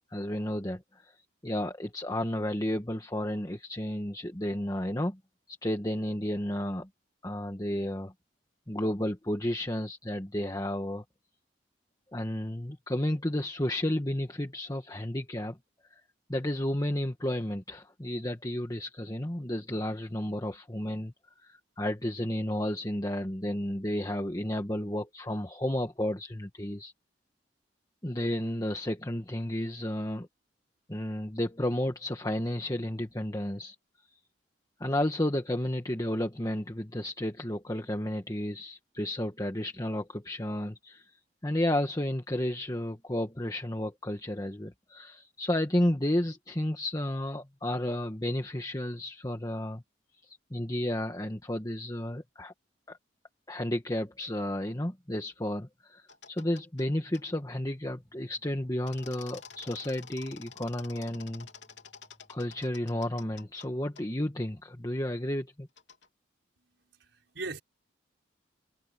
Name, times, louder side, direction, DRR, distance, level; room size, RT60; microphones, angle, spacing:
voice 1, 0.1-1.1 1.4-5.2 5.5-6.9 7.2-8.1 8.7-11.0 12.1-15.6 15.9-16.0 16.3-26.9 28.0-30.3 30.9-33.7 34.8-49.8 50.2-52.5 52.9-53.0 53.5-61.5 62.3-65.7, left 1 dB, 20° left, 1.5 m, -32 dB
sound 1, 56.1-56.9 57.1-57.2 58.9-63.7 64.0-64.1 65.8-66.1, left 6 dB, 75° left, 3.3 m, -49 dB
sound 2, 57.9-62.7, equal, ahead, 4.3 m, -65 dB
voice 2, 66.6-67.6, right 3 dB, 70° right, 5.6 m, -41 dB
head